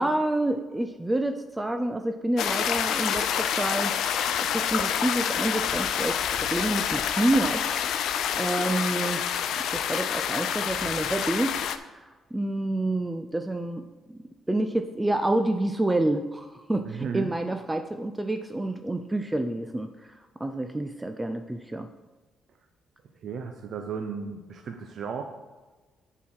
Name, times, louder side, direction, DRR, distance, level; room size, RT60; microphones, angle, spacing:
voice 1, 0.0-4.0 4.5-6.2 6.5-7.6 8.4-9.2 9.6-11.6 11.9-12.0 12.3-13.8 14.5-19.9 20.4-21.9, right 1 dB, 15° right, 7 dB, 0.5 m, -28 dB
sound 1, 2.4-11.8, left 9 dB, 80° left, 0.5 m, -27 dB
voice 2, 16.8-17.3 23.2-25.2, right 6 dB, 60° right, 4 dB, 0.7 m, -34 dB
7.0 x 4.6 x 6.4 m, 1.3 s
cardioid pair, 90°, 0 cm